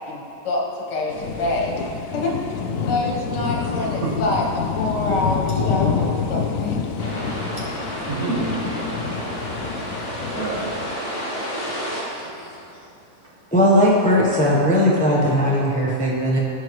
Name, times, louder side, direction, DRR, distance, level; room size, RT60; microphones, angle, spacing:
voice 1, 0.1-1.8 2.1-6.8, left 2 dB, 85° left, -1 dB, 1.9 m, -26 dB
sound 1, 1.1-10.9, left 6 dB, 70° left, 0.8 m, -27 dB
voice 2, 3.6-4.2 8.0-8.5 10.2-10.7 11.5-12.8, right 3 dB, 60° right, -7 dB, 2.4 m, -30 dB
sound 2, 7.0-12.0, equal, 35° left, 2.5 m, -30 dB
voice 3, 13.5-16.4, equal, 5° left, -4 dB, 0.7 m, -18 dB
15.5 x 5.5 x 3.1 m, 2.8 s
omnidirectional pair, 1.8 m